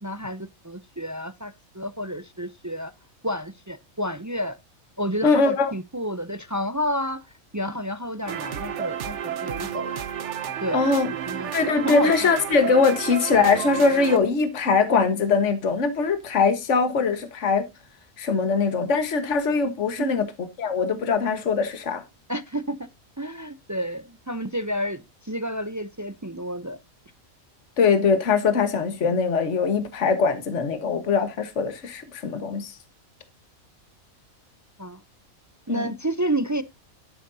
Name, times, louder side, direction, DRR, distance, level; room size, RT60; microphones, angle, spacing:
voice 1, 0.0-2.9 3.2-4.6 5.0-7.3 7.5-10.0 10.6-10.8 11.3-12.3 20.0-20.2 22.3-22.9 23.2-26.8 34.8-35.0 35.7-36.6, equal, 30° right, 0.3 m, -30 dB
voice 2, 5.2-5.7 10.7-11.1 11.5-17.6 18.2-20.3 20.6-22.0 27.8-32.8 35.7-35.9, left 4 dB, 60° left, 1.7 m, -22 dB
sound 1, 8.3-14.2, right 9 dB, 60° right, 1.1 m, -31 dB
11.5 x 10.0 x 2.7 m
omnidirectional pair, 1.4 m